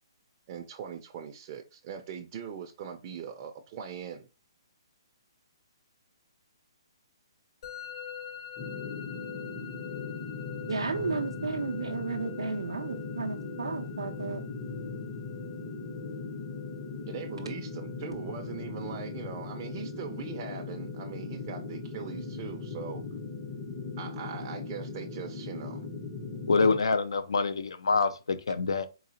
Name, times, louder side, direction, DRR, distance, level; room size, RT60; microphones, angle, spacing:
voice 1, 0.5-4.3 17.0-23.0 24.0-25.9, right 7 dB, 35° right, 0.4 m, -41 dB
Musical instrument, 7.6-26.5, left 9 dB, 60° left, 1.1 m, -48 dB
sound 1, 8.6-26.8, left 4 dB, 25° left, 0.7 m, -39 dB
voice 2, 10.7-14.4, right 4 dB, 90° right, 0.4 m, -33 dB
voice 3, 26.5-28.9, left 4 dB, 80° left, 0.4 m, -26 dB
3.8 x 2.7 x 2.8 m
hypercardioid pair, 140°, 3 cm